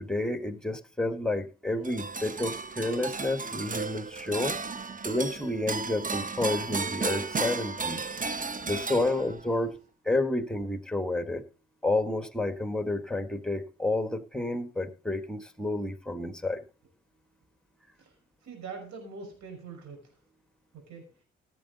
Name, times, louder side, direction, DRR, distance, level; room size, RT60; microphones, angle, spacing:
voice 1, 0.0-4.6 5.0-8.0 8.6-9.8 10.1-11.4 11.8-16.6, left 2 dB, ahead, 1.7 m, -30 dB
sound 1, 1.8-9.5, right 4 dB, 25° right, 1.0 m, -34 dB
voice 2, 18.4-20.1 20.7-21.1, right 4 dB, 65° right, 5.9 m, -43 dB
16.0 x 7.7 x 4.0 m
hypercardioid pair, 40°, 31 cm